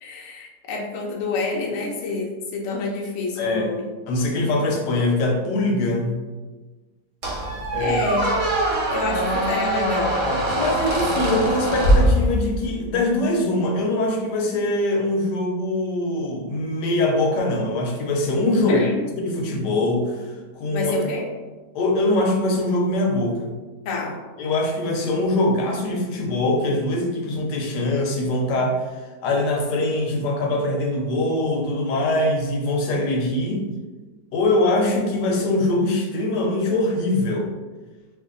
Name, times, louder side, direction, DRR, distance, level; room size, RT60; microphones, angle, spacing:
voice 1, 0.0-3.9 7.8-8.3 8.9-10.3 18.7-19.0 20.7-21.2 23.8-24.2, left 3 dB, 60° left, -2 dB, 0.8 m, -28 dB
voice 2, 3.4-3.7 4.1-6.2 7.7-8.0 10.6-18.9 19.2-20.2 20.5-20.9 21.7-23.5 24.4-28.8 29.2-33.7 34.3-37.5, left 2 dB, 80° left, 1 dB, 1.2 m, -22 dB
Squeak, 7.2-12.7, equal, 55° right, 0.9 m, -22 dB
2.8 x 2.6 x 3.7 m, 1.3 s
omnidirectional pair, 1.8 m